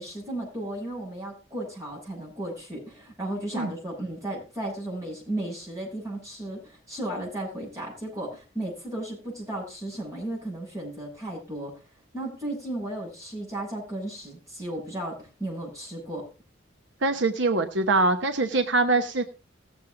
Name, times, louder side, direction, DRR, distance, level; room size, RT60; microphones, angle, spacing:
voice 1, 0.0-11.8 12.1-16.3, right 1 dB, 15° right, -4 dB, 7.5 m, -34 dB
voice 2, 17.0-19.2, right 3 dB, 65° right, 7 dB, 0.9 m, -23 dB
17.5 x 7.4 x 3.8 m, 0.33 s
head